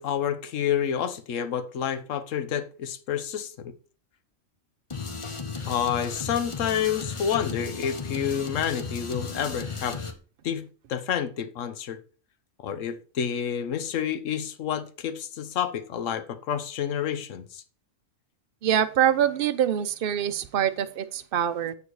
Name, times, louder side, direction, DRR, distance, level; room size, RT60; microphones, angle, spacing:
voice 1, 0.0-3.7 5.7-10.0 10.4-12.0 12.6-17.6, left 8 dB, 70° left, 1.1 m, -29 dB
sound 1, 4.9-10.1, left 4 dB, 30° left, 0.8 m, -35 dB
voice 2, 18.6-21.7, right 10 dB, 55° right, 0.7 m, -24 dB
8.4 x 4.8 x 4.7 m
omnidirectional pair, 1.4 m